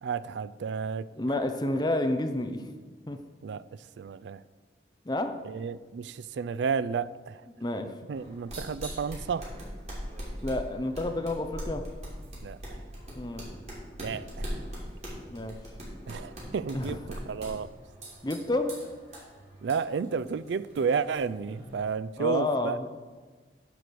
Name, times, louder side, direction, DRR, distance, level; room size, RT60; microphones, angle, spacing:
voice 1, 0.0-1.1 3.4-4.4 5.4-7.5 8.1-9.5 12.4-12.8 14.0-14.6 16.1-17.7 19.6-22.8, right 6 dB, 85° right, 16 dB, 0.4 m, -32 dB
voice 2, 1.1-2.7 3.1-3.2 5.0-5.4 7.6-7.9 10.4-11.9 13.2-13.4 15.3-15.6 16.7-17.0 18.2-18.8 22.2-23.0, left 2 dB, 25° left, 6 dB, 0.7 m, -30 dB
sound 1, 8.1-21.9, equal, 40° right, 3.0 m, -41 dB
10.0 x 4.8 x 6.8 m, 1.4 s
head